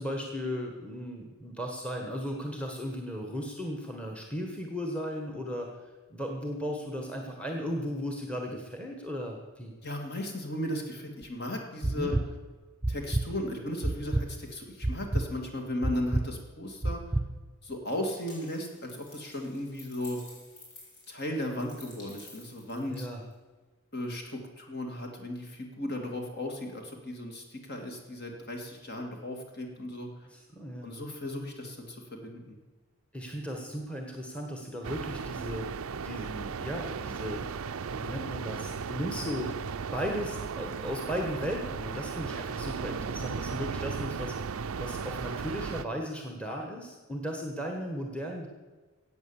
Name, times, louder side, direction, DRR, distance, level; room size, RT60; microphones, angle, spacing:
voice 1, 0.0-5.8 6.1-9.7 11.8-12.2 22.9-23.2 30.3-30.9 33.1-35.8 36.0-37.5 37.9-39.6 39.9-48.5, equal, 5° left, 2 dB, 1.3 m, -36 dB
voice 2, 9.8-12.2 12.9-17.0 17.6-20.2 21.1-23.1 23.9-30.1 30.8-32.6, left 1 dB, 45° left, 2 dB, 2.4 m, -36 dB
sound 1, 11.2-11.3 11.8-12.2 12.8-13.2 13.8-14.2 14.8-15.2 15.8-16.2 16.8-17.2, right 2 dB, 15° right, 0.8 m, -27 dB
sound 2, 18.1-23.3, left 2 dB, 85° left, 4.8 m, -52 dB
sound 3, 34.8-45.8, right 5 dB, 70° right, 0.5 m, -36 dB
15.0 x 8.7 x 7.2 m, 1.3 s
head